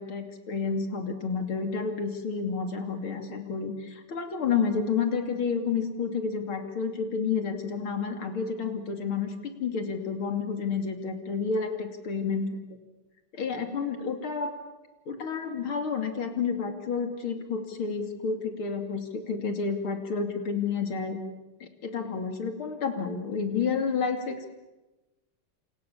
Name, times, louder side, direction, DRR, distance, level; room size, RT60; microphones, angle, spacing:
voice 1, 0.0-12.6 13.3-14.5 15.1-21.2 21.6-24.5, left 5 dB, 70° left, 5 dB, 3.6 m, -30 dB
28.5 x 28.0 x 7.2 m, 1.1 s
omnidirectional pair, 2.4 m